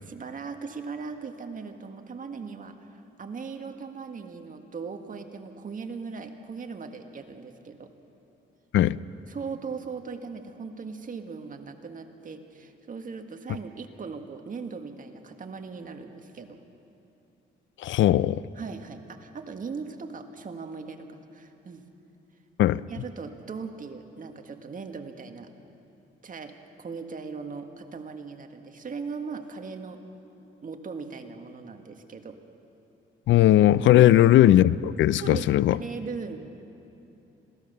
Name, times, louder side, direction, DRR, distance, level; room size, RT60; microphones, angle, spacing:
voice 1, 0.0-7.9 9.3-16.6 18.6-21.8 22.9-25.5 26.2-26.5 26.8-30.0 30.6-32.4 33.9-34.1 35.1-36.4, right 5 dB, 40° right, 5 dB, 1.8 m, -39 dB
voice 2, 17.8-18.4 22.6-22.8 33.3-35.8, left 13 dB, 70° left, 19 dB, 0.5 m, -18 dB
26.5 x 17.5 x 6.8 m, 2.9 s
cardioid pair, 90°, 20 cm